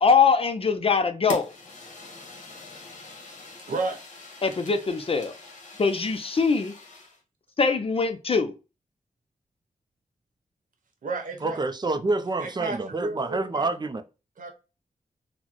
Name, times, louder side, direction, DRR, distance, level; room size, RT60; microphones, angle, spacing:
voice 1, 0.0-1.5 4.4-5.3 5.8-6.7 7.6-8.5, left 5 dB, 45° left, 0.5 m, -22 dB
Fire, 1.3-7.2, left 2 dB, 65° left, 1.0 m, -43 dB
voice 2, 3.7-4.0 11.0-11.6 12.4-13.7 14.4-14.5, right 3 dB, 80° right, 0.9 m, -32 dB
voice 3, 11.4-14.0, right 3 dB, 30° right, 0.4 m, -27 dB
4.0 x 2.1 x 2.9 m
wide cardioid pair, 75°, 14 cm